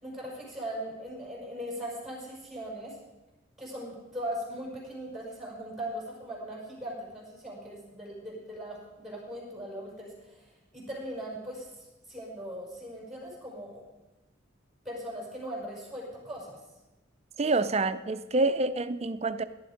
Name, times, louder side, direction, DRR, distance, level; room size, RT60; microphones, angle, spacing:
voice 1, 0.0-3.0 3.6-13.8 14.8-16.6, equal, ahead, -5 dB, 5.7 m, -39 dB
voice 2, 17.4-19.4, right 2 dB, 30° right, 12 dB, 0.5 m, -27 dB
17.5 x 11.0 x 5.1 m, 1.0 s
head